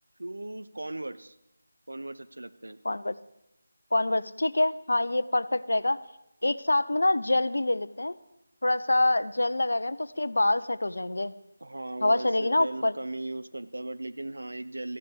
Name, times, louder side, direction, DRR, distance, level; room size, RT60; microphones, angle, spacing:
voice 1, 0.2-1.3 1.9-2.8 11.6-15.0, right 2 dB, 70° right, 11 dB, 1.0 m, -37 dB
voice 2, 2.8-3.1 3.9-6.0 6.4-8.2 8.6-11.3 12.0-12.9, left 2 dB, 70° left, 15 dB, 0.8 m, -26 dB
14.0 x 10.0 x 8.2 m, 0.85 s
figure-of-eight pair, 160°, 0 cm